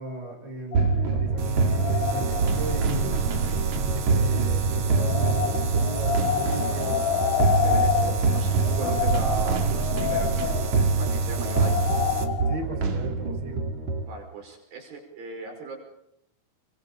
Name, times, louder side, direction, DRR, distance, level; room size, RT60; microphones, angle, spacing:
voice 1, 0.0-3.3 3.9-7.1 7.4-8.1 12.5-13.7, right 2 dB, 20° right, 3 dB, 5.4 m, -36 dB
sound 1, 0.7-3.0 4.9-12.6, left 9 dB, 75° left, 2.8 m, -29 dB
sound 2, 0.7-14.0, right 4 dB, 55° right, 3.6 m, -25 dB
sound 3, 1.4-12.2, right 8 dB, 90° right, 4.3 m, -37 dB
voice 2, 7.6-11.8 14.0-15.8, right 3 dB, 70° right, 1 dB, 7.2 m, -36 dB
30.0 x 24.5 x 5.4 m, 0.81 s
omnidirectional pair, 4.3 m